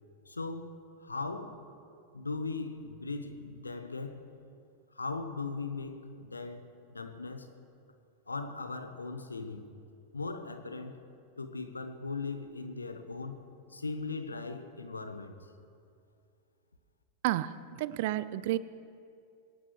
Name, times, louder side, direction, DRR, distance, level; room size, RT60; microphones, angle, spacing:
voice 1, 0.3-1.6 2.1-4.3 4.9-7.5 8.3-9.8 10.1-11.0 11.4-13.4 13.7-15.3, left 3 dB, 80° left, 9 dB, 1.1 m, -39 dB
voice 2, 17.2-18.6, right 14 dB, 50° right, 17 dB, 0.5 m, -31 dB
24.0 x 18.5 x 3.2 m, 2.4 s
figure-of-eight pair, 90°, 0 cm